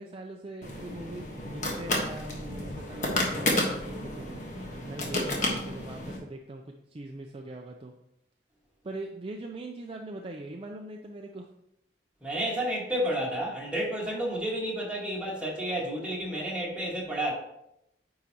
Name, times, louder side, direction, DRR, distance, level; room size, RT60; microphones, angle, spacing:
voice 1, 0.0-4.4 4.8-7.9 8.8-11.5, right 2 dB, 30° right, 2 dB, 0.4 m, -41 dB
sound 1, 0.6-6.2, left 1 dB, 45° left, 1.3 m, -31 dB
voice 2, 12.2-17.3, right 1 dB, 5° right, -5 dB, 1.7 m, -31 dB
9.1 x 4.8 x 2.9 m, 0.82 s
head